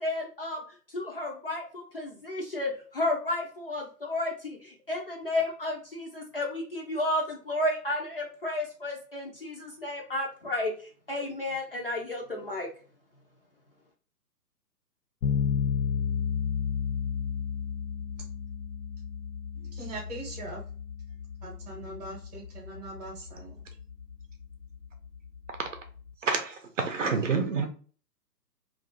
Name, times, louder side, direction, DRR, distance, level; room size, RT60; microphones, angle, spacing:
voice 1, 0.0-12.7, left 1 dB, 35° left, 0 dB, 0.5 m, -32 dB
sound 1, 15.2-26.1, left 7 dB, 85° left, 0.6 m, -33 dB
voice 2, 19.5-20.6 21.4-23.7, right 2 dB, 25° right, 0 dB, 0.8 m, -41 dB
voice 3, 26.2-27.7, right 5 dB, 50° right, 5 dB, 0.6 m, -28 dB
2.6 x 2.5 x 3.6 m, 0.41 s
figure-of-eight pair, 130°, 50 cm